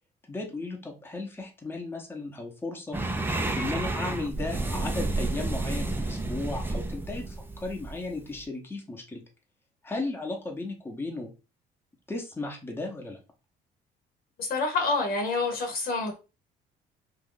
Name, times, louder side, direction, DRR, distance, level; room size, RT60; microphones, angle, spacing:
voice 1, 0.3-3.0 3.5-9.2 9.8-11.3 12.1-13.2, left 2 dB, 15° left, 1 dB, 1.0 m, -35 dB
sound 1, 2.9-8.4, right 2 dB, 10° right, 0.5 m, -31 dB
voice 2, 14.4-16.2, left 3 dB, 60° left, 3 dB, 1.1 m, -27 dB
2.8 x 2.6 x 3.7 m, 0.30 s
cardioid pair, 110°, 17 cm